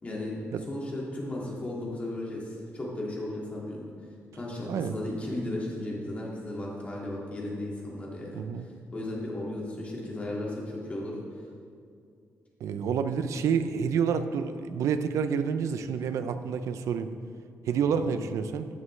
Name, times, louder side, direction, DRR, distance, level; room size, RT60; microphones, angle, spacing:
voice 1, 0.0-0.4 0.7-3.9 4.3-8.4 8.9-11.2 17.9-18.1, left 1 dB, 25° left, -4 dB, 2.1 m, -35 dB
voice 2, 8.3-8.7 12.6-17.1 17.6-18.7, right 6 dB, 75° right, 10 dB, 0.6 m, -28 dB
14.5 x 8.3 x 3.3 m, 2.3 s
wide cardioid pair, 165°, 5 cm